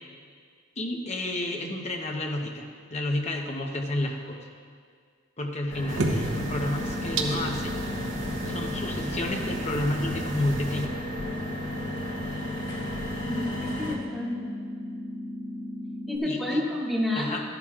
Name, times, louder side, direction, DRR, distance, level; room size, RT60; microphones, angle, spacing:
voice 1, 0.8-4.4 5.4-7.7 8.5-10.9 16.2-16.6 17.2-17.4, left 1 dB, 35° left, 2 dB, 1.0 m, -30 dB
sound 1, 5.7-14.0, left 1 dB, 65° left, 1.8 m, -35 dB
sound 2, 5.9-10.9, right 2 dB, 80° right, 1.0 m, -33 dB
sound 3, 6.2-16.2, left 1 dB, 25° right, 1.6 m, -36 dB
voice 2, 13.2-14.5 16.1-17.4, left 1 dB, ahead, -8 dB, 2.5 m, -29 dB
14.5 x 11.5 x 2.5 m, 2.1 s
head